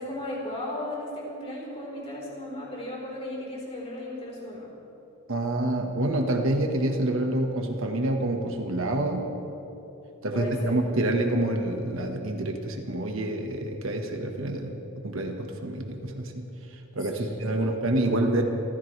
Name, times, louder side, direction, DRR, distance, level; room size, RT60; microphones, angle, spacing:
voice 1, 0.0-4.7 10.3-10.7 17.1-17.7, left 1 dB, 30° left, -4 dB, 4.3 m, -36 dB
voice 2, 5.3-9.3 10.2-14.8 15.0-18.4, right 1 dB, 65° right, 3 dB, 1.5 m, -27 dB
26.5 x 15.5 x 3.4 m, 3.0 s
head